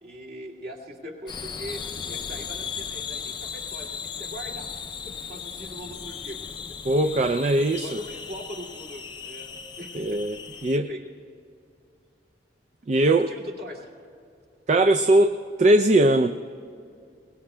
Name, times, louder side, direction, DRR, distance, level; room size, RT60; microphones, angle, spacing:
voice 1, 0.0-4.8 5.0-6.4 7.7-10.2 10.5-11.0 12.9-13.9, equal, 55° right, -2 dB, 2.2 m, -41 dB
sound 1, 1.3-10.8, left 6 dB, 25° left, 0.4 m, -37 dB
voice 2, 6.8-7.9 9.9-10.4 10.6-10.9 12.9-13.3 14.7-16.4, right 1 dB, 40° right, 6 dB, 0.4 m, -20 dB
23.0 x 19.0 x 2.2 m, 2.5 s
head